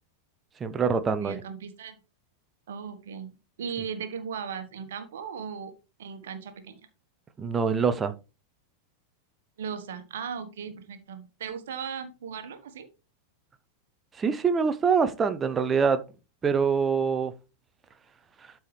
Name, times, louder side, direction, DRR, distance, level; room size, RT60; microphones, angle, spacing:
voice 1, 0.6-1.4 7.4-8.1 14.2-16.0 16.4-17.3 18.4-18.5, right 6 dB, 20° right, 0.8 m, -24 dB
voice 2, 1.2-2.0 2.7-3.3 3.6-5.7 6.0-6.8 9.6-12.9, right 7 dB, 60° right, 1.3 m, -37 dB
12.5 x 4.6 x 3.3 m
figure-of-eight pair, 90°, 0 cm